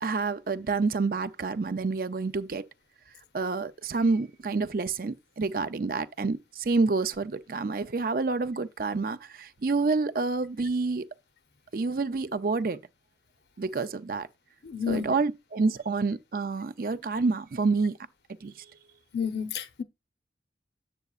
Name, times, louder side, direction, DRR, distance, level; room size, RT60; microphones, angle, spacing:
voice 1, 0.0-2.7 3.3-11.1 11.7-12.8 13.6-14.3 14.9-18.0 18.4-18.7, right 4 dB, 50° right, 0.5 m, -28 dB
voice 2, 14.6-15.1 19.1-19.8, left 6 dB, 65° left, 0.8 m, -30 dB
8.0 x 7.8 x 2.4 m
head